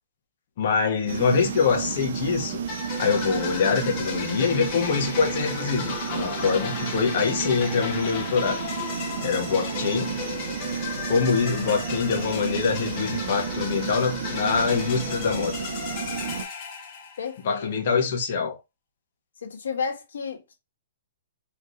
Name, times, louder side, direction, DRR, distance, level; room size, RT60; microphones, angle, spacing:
voice 1, 0.6-2.6 3.0-8.6 9.2-10.2 11.1-15.6 17.4-18.6, left 5 dB, 45° left, 1.3 m, -24 dB
sound 1, 1.1-16.4, right 7 dB, 60° right, 1.0 m, -32 dB
sound 2, 2.7-17.5, left 6 dB, 30° left, 1.1 m, -35 dB
voice 2, 17.2-17.7 19.4-20.5, left 5 dB, 85° left, 1.6 m, -32 dB
4.1 x 3.2 x 3.3 m
hypercardioid pair, 160°, 0 cm